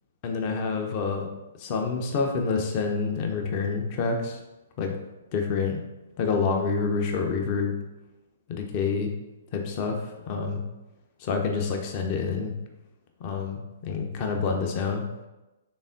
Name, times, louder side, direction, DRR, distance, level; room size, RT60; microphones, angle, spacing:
voice 1, 0.2-1.3 1.6-4.4 4.8-4.9 5.3-5.8 6.2-7.7 8.5-9.1 9.5-10.6 11.2-12.5 13.2-15.0, left 5 dB, 40° left, 3 dB, 0.6 m, -27 dB
4.0 x 3.5 x 3.7 m, 1.0 s
figure-of-eight pair, 120°, 0 cm